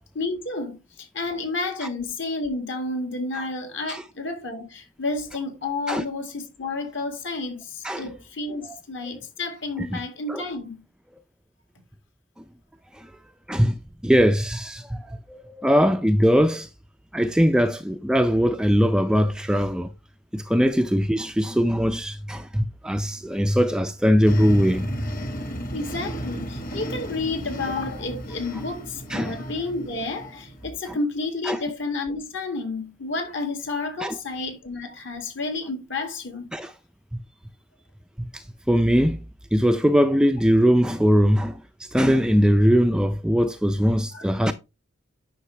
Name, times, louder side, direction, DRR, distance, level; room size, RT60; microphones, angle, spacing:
voice 1, 0.1-10.8 25.7-36.5 44.1-44.3, left 3 dB, 60° left, 2.3 m, -31 dB
voice 2, 13.5-16.7 17.1-19.9 20.3-25.2 29.1-29.4 30.9-31.0 31.5-31.6 34.0-34.2 36.5-36.7 38.2-39.2 39.5-44.5, equal, 5° right, 0.3 m, -21 dB
sound 1, 24.3-30.7, right 1 dB, 40° left, 1.7 m, -34 dB
9.7 x 5.8 x 3.2 m
head